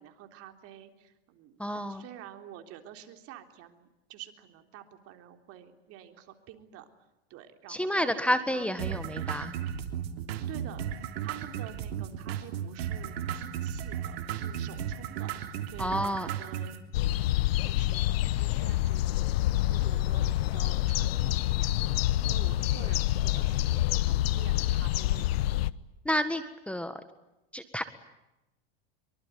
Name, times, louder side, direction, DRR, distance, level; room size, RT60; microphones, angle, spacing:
voice 1, 0.0-1.6 1.9-7.1 7.3-9.4 10.5-10.9 11.2-16.8 17.3-19.3 19.7-25.5, right 11 dB, 50° right, 6 dB, 3.6 m, -49 dB
voice 2, 1.6-2.0 7.7-9.5 15.8-16.3 26.0-27.0 27.5-27.9, equal, 5° left, 10 dB, 1.6 m, -30 dB
sound 1, 8.8-16.8, right 9 dB, 75° right, 3.3 m, -35 dB
sound 2, 16.9-25.7, left 15 dB, 75° left, 1.0 m, -27 dB
24.5 x 24.0 x 9.4 m, 0.95 s
supercardioid pair, 115°, 31 cm